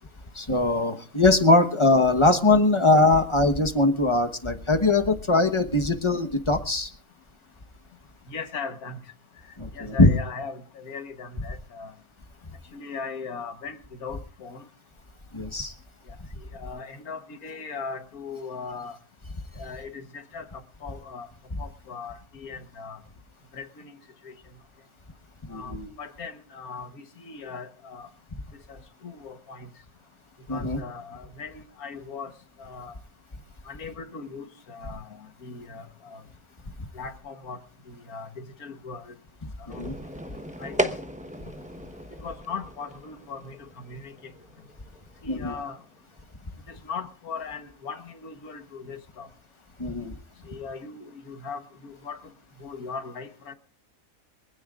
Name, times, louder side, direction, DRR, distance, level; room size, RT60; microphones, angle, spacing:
voice 1, 0.3-6.9 9.6-10.1 15.3-15.7 25.5-25.9 30.5-30.8 39.7-39.9 45.3-45.5 49.8-50.1, left 2 dB, 20° left, 6 dB, 1.1 m, -21 dB
voice 2, 8.3-9.0 9.7-11.9 12.7-14.7 16.1-19.0 19.6-21.3 21.6-23.0 23.5-24.0 24.2-24.4 25.5-28.1 28.7-29.7 30.5-32.3 32.6-32.9 33.7-36.2 36.9-37.6 37.9-39.2 39.6-39.9 40.6-40.9 42.2-44.3 45.2-45.8 46.7-49.3 50.5-52.2 52.6-53.5, left 5 dB, 80° left, 8 dB, 1.8 m, -39 dB
sound 1, 39.7-46.3, right 1 dB, 5° right, 0.9 m, -36 dB
24.5 x 16.0 x 2.5 m, 0.41 s
omnidirectional pair, 1.5 m